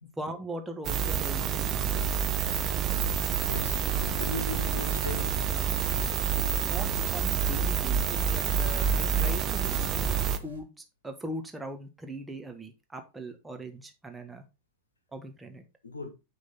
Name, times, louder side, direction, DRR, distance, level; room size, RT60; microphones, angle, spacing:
voice 1, 0.2-2.3 6.6-10.2 10.4-14.4 15.1-15.6, right 1 dB, 10° right, 1.4 m, -40 dB
sound 1, 0.8-10.4, right 7 dB, 30° right, 0.8 m, -28 dB
sound 2, 2.0-10.6, right 3 dB, 80° right, 2.5 m, -43 dB
voice 2, 3.2-3.8 4.1-5.4 15.8-16.1, left 3 dB, 75° left, 1.3 m, -38 dB
9.6 x 3.8 x 4.1 m
figure-of-eight pair, 90°, 0 cm